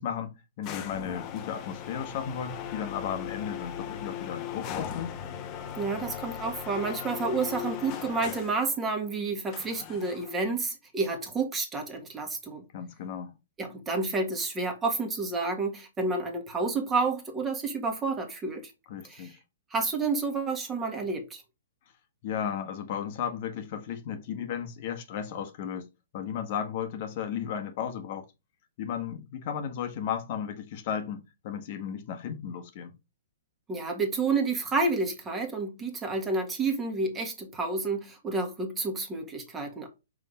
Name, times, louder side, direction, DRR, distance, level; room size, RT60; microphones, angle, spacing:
voice 1, 0.0-5.1 12.7-13.3 18.9-19.4 22.2-25.9 26.1-28.2 28.8-32.9, left 8 dB, 45° left, 1.2 m, -34 dB
sound 1, 0.6-8.7 9.5-10.4, left 9 dB, 30° left, 1.0 m, -38 dB
voice 2, 5.8-12.6 13.6-18.7 19.0-19.3 19.7-21.4 33.7-39.9, right 3 dB, 15° right, 1.5 m, -30 dB
5.6 x 3.5 x 5.5 m
hypercardioid pair, 140°, 0 cm